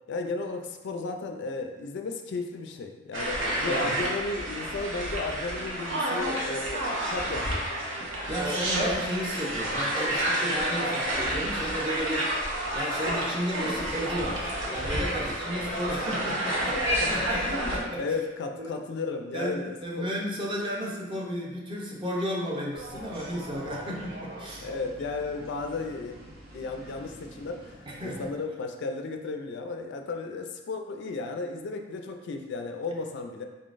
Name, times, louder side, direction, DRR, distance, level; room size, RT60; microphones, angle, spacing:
voice 1, 0.1-7.6 15.5-15.6 16.6-20.1 24.6-26.2 26.5-33.4, left 3 dB, 60° left, 5 dB, 0.4 m, -34 dB
sound 1, 3.1-17.8, right 1 dB, 75° right, 0.9 m, -29 dB
voice 2, 8.3-12.4 12.7-18.0 18.6-18.8 19.3-24.7 27.9-28.3, equal, 25° right, -3 dB, 0.7 m, -33 dB
sound 2, 22.7-28.3, right 1 dB, 50° right, 0.8 m, -45 dB
3.9 x 3.7 x 2.5 m, 1.2 s
head